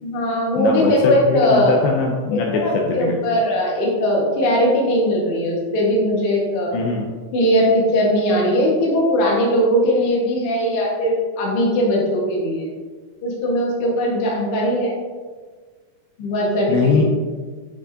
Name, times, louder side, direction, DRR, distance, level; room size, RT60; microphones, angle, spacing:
voice 1, 0.0-1.8 2.3-6.8 7.3-12.7 13.2-14.9 16.2-17.0, equal, 65° left, -3 dB, 1.4 m, -19 dB
voice 2, 0.6-3.3 6.7-7.1 16.7-17.0, left 4 dB, 80° left, 0 dB, 2.3 m, -21 dB
8.8 x 4.7 x 2.7 m, 1.5 s
omnidirectional pair, 4.7 m